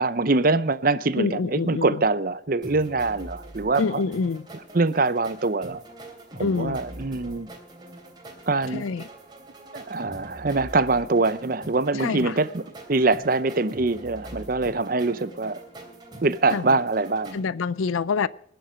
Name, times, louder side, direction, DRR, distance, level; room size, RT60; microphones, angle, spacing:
voice 1, 0.0-4.0 4.7-5.8 6.4-7.5 8.5-8.9 9.7-15.6 16.2-17.4, right 3 dB, 45° right, 0.7 m, -24 dB
voice 2, 1.2-2.0 3.8-4.4 6.4-6.8 8.7-9.1 12.0-12.4 16.5-16.7 17.3-18.3, left 5 dB, 85° left, 0.5 m, -26 dB
sound 1, 2.6-17.4, right 1 dB, 20° right, 3.0 m, -43 dB
20.0 x 7.9 x 5.1 m
head